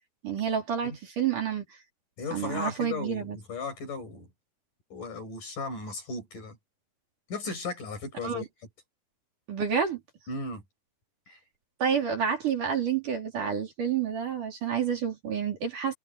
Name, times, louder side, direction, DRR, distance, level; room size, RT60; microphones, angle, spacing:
voice 1, 0.2-1.6 2.3-3.4 8.2-8.5 9.5-10.0 11.8-15.9, right 7 dB, 50° right, 5.2 m, -29 dB
voice 2, 2.2-4.3 4.9-6.6 7.3-8.5 10.3-10.6 11.3-11.4, left 3 dB, 50° left, 8.2 m, -36 dB
omnidirectional pair, 4.7 m